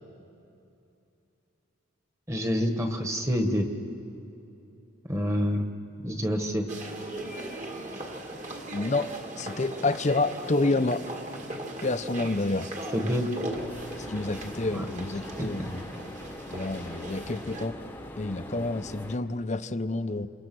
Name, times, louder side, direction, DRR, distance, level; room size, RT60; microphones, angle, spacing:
voice 1, 2.3-3.7 5.1-5.7 6.0-6.7 12.9-13.3 14.7-14.8 15.4-15.7, equal, 15° right, 5 dB, 1.6 m, -27 dB
sound 1, 6.7-17.7, right 1 dB, 35° right, 2.2 m, -39 dB
voice 2, 8.7-9.1 9.4-11.0 11.8-12.7 14.0-15.8 16.5-17.8 18.2-20.3, left 2 dB, 35° left, 10 dB, 0.7 m, -28 dB
sound 2, 13.5-19.2, left 1 dB, 10° left, 1.1 m, -42 dB
29.0 x 28.0 x 6.2 m, 2.9 s
head